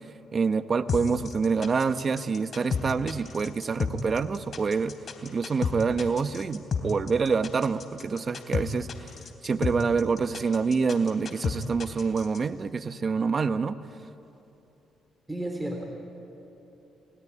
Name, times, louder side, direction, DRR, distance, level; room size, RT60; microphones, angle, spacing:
voice 1, 0.3-4.9 5.2-8.9 9.4-13.7, right 5 dB, 40° right, 10 dB, 1.0 m, -26 dB
sound 1, 0.9-12.4, left 5 dB, 50° left, 3.3 m, -31 dB
voice 2, 15.3-15.8, right 1 dB, 10° right, 2 dB, 3.6 m, -32 dB
30.0 x 19.0 x 9.7 m, 2.9 s
cardioid pair, 90°, 0 cm